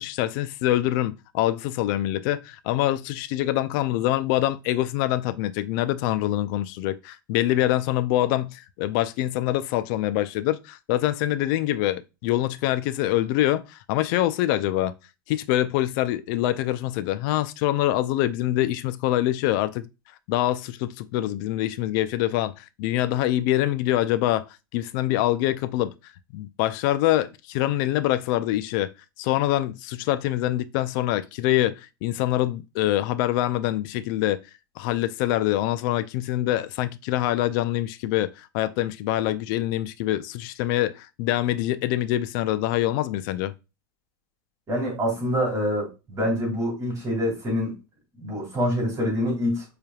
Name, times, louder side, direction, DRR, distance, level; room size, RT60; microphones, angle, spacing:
voice 1, 0.0-14.9 15.3-19.9 20.3-25.9 26.3-28.9 29.2-34.4 34.8-43.5, left 14 dB, 60° left, 0.4 m, -25 dB
voice 2, 44.7-47.7 48.2-49.6, equal, 25° right, 2.5 m, -26 dB
4.6 x 3.3 x 2.3 m
supercardioid pair, 110°, 12 cm